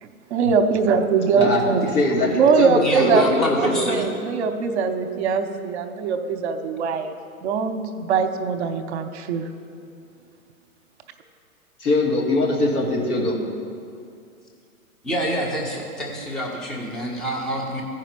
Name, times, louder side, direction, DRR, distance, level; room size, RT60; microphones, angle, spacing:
voice 1, 0.0-1.8 2.4-7.2 7.4-9.5, right 5 dB, 50° right, 7 dB, 0.8 m, -22 dB
voice 2, 1.9-2.3 2.6-4.0 11.8-13.3, left 2 dB, 85° left, -3 dB, 2.5 m, -21 dB
voice 3, 2.8-3.3 3.6-4.0 15.0-17.8, right 1 dB, ahead, -2 dB, 0.5 m, -27 dB
15.0 x 5.0 x 5.9 m, 2.4 s
hypercardioid pair, 120°, 44 cm